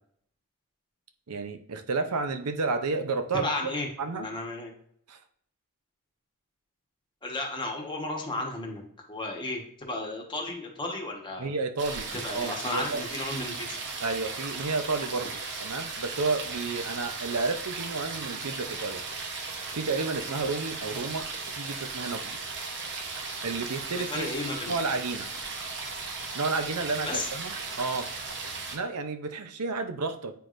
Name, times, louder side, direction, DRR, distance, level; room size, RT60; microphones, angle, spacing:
voice 1, 1.3-3.7 4.0-4.3 5.1-5.2 11.4-12.1 12.3-13.0 14.0-15.3 15.6-19.0 19.7-21.2 21.6-22.4 23.4-24.3 24.7-25.3 26.3-28.1 28.7-30.3, right 3 dB, 85° right, 8 dB, 0.7 m, -31 dB
voice 2, 3.3-3.9 4.1-4.7 7.2-8.8 9.1-11.5 12.1-13.8 24.0-24.7 27.1-27.3, left 2 dB, 20° left, 0 dB, 1.3 m, -33 dB
sound 1, 11.8-28.8, right 4 dB, 55° right, 0.9 m, -36 dB
9.0 x 4.7 x 2.5 m, 0.65 s
head